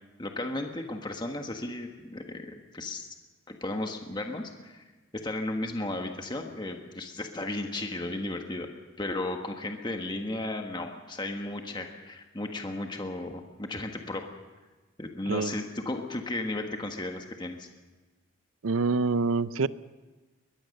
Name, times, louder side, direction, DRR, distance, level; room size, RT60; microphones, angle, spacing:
voice 1, 0.2-3.1 3.5-4.8 5.1-8.7 9.0-14.3 15.0-17.7, left 2 dB, 20° left, 4 dB, 1.5 m, -34 dB
voice 2, 18.6-19.7, right 4 dB, 85° right, 16 dB, 0.6 m, -26 dB
22.0 x 21.0 x 6.6 m, 1.2 s
head